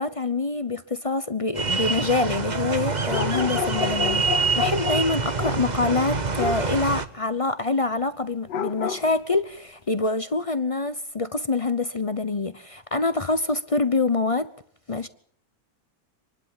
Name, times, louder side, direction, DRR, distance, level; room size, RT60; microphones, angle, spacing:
voice 1, 0.0-4.2 4.5-14.5 14.9-15.1, left 3 dB, 35° left, 0.5 m, -25 dB
sound 1, 1.5-7.1, right 4 dB, 30° right, 1.1 m, -26 dB
sound 2, 3.1-5.7 6.3-6.7 8.5-9.1, left 8 dB, 80° left, 1.7 m, -30 dB
26.0 x 12.0 x 9.0 m
omnidirectional pair, 1.8 m